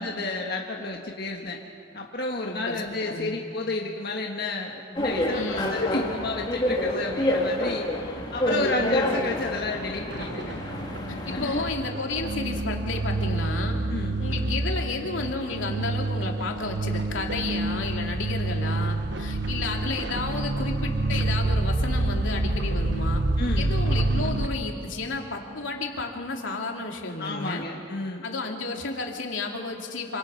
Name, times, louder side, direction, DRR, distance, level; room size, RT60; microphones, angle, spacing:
voice 1, 0.0-1.6 1.9-7.9 8.3-10.6 11.2-11.7 13.9-14.1 23.4-23.8 27.2-28.2, left 2 dB, 55° left, 0 dB, 1.7 m, -31 dB
voice 2, 2.4-2.8 3.1-3.4 5.3-5.7 8.5-8.8 11.3-13.8 14.2-23.2 23.6-27.6 28.2-30.2, left 3 dB, 85° left, 1 dB, 2.8 m, -32 dB
sound 1, 5.0-11.6, left 1 dB, 25° left, 2.8 m, -28 dB
sound 2, 10.1-24.5, right 2 dB, 65° right, 1.1 m, -28 dB
27.5 x 26.0 x 5.7 m, 2.5 s
head